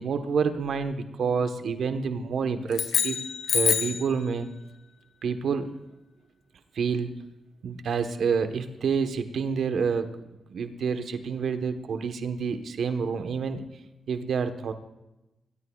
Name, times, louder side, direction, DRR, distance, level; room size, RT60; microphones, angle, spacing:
voice 1, 0.0-3.2 3.5-4.5 5.2-5.7 6.7-7.1 7.6-10.1 10.5-13.6 14.1-14.7, right 6 dB, 75° right, 8 dB, 1.2 m, -28 dB
sound 1, 2.7-4.1, left 7 dB, 80° left, 1.1 m, -26 dB
23.0 x 17.5 x 2.4 m, 0.97 s
supercardioid pair, 50°, 0 cm